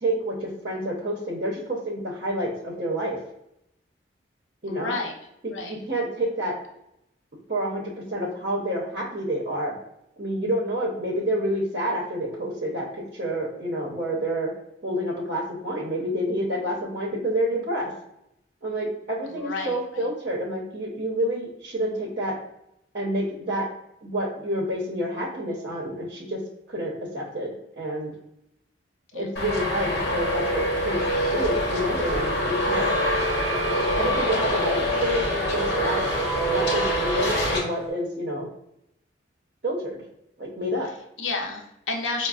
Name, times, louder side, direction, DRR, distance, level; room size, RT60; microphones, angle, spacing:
voice 1, 0.0-3.2 4.6-4.9 5.7-6.6 7.5-9.7 10.2-14.5 14.8-17.9 18.6-22.3 22.9-23.7 24.0-26.4 26.7-27.5 27.8-28.1 29.1-31.0 31.3-32.9 34.0-36.0 36.5-38.5 39.6-40.0 40.4-40.9, right 1 dB, 45° right, -4 dB, 0.7 m, -28 dB
voice 2, 4.7-5.1 5.5-5.7 19.3-20.1 29.1-29.3 40.8-42.3, left 3 dB, 90° left, 1 dB, 0.6 m, -31 dB
Traffic noise roadway noise, 29.4-37.6, left 1 dB, 55° left, 1.0 m, -25 dB
sound 1, 32.6-37.9, right 6 dB, 5° right, 0.3 m, -32 dB
5.1 x 2.1 x 2.4 m, 0.79 s
head